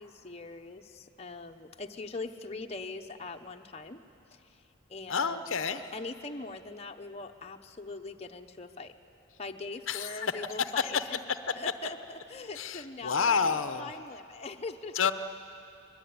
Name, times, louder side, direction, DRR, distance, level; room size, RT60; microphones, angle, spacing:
voice 1, 0.0-4.0 4.3-4.6 4.9-8.9 9.4-11.2 11.6-15.1, left 3 dB, 30° left, 4 dB, 0.9 m, -42 dB
voice 2, 5.1-5.8 9.9-10.3 10.6-11.5 12.6-13.9 15.0-15.1, left 6 dB, 70° left, 10 dB, 0.8 m, -29 dB
25.0 x 21.5 x 9.6 m, 2.8 s
head